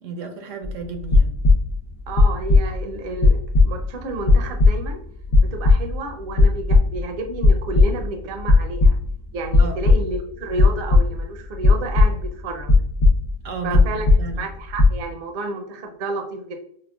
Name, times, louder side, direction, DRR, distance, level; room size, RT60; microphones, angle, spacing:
voice 1, 0.0-1.3 9.6-9.9 13.4-14.4, right 3 dB, 75° right, 6 dB, 1.0 m, -32 dB
sound 1, 0.6-1.8 2.1-2.9 3.2-4.9 5.3-6.1 6.4-7.1 7.4-8.1 8.4-9.1 9.5-10.3 10.5-11.2 11.6-12.4 12.7-13.4 13.7-14.5 14.8-15.0, left 3 dB, 70° left, 1.1 m, -16 dB
voice 2, 2.1-3.4 3.6-5.0 5.4-9.0 9.3-12.8 13.6-14.1 14.4-16.5, right 2 dB, 55° right, 4 dB, 0.7 m, -31 dB
5.6 x 2.1 x 2.2 m, 0.67 s
omnidirectional pair, 1.4 m